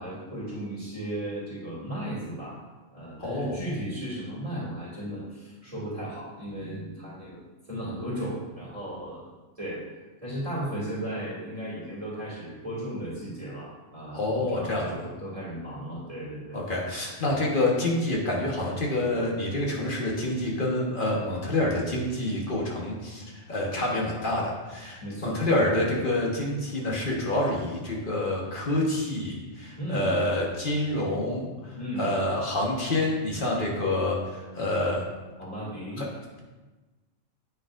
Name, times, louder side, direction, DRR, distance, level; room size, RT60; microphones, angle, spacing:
voice 1, 0.0-2.6 2.9-7.4 7.7-9.3 9.6-9.8 10.2-16.6 25.0-25.4 29.8-30.2 31.8-32.2 35.4-36.0, right 1 dB, 25° right, -8 dB, 2.4 m, -35 dB
voice 2, 3.2-3.6 14.1-15.1 16.5-35.0 36.0-36.1, left 1 dB, 40° left, -3 dB, 1.4 m, -27 dB
8.3 x 6.2 x 2.5 m, 1.2 s
omnidirectional pair, 1.3 m